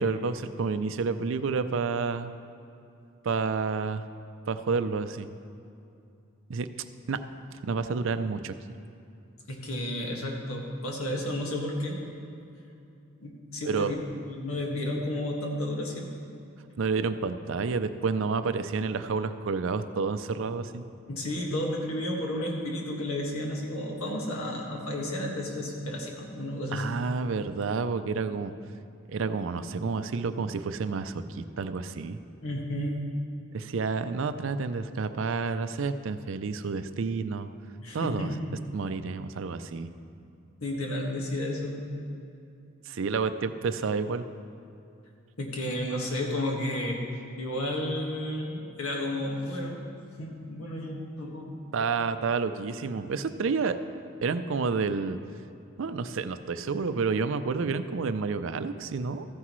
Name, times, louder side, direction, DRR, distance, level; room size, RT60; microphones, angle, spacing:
voice 1, 0.0-2.3 3.2-4.0 4.5-5.3 6.5-6.7 7.1-7.2 7.6-8.5 13.7-13.9 16.8-20.8 26.7-28.5 29.1-32.2 33.5-37.5 37.9-38.3 38.7-39.9 42.9-44.2 51.7-53.8 54.2-55.2 55.8-59.3, right 4 dB, 65° right, 11 dB, 0.4 m, -29 dB
voice 2, 9.5-12.1 13.2-14.0 14.3-16.1 21.1-26.8 32.4-33.1 37.8-38.3 40.6-41.9 45.4-47.0 47.4-49.8 50.2-51.5, left 1 dB, 90° left, 0 dB, 1.7 m, -32 dB
14.5 x 9.7 x 3.1 m, 2.6 s
head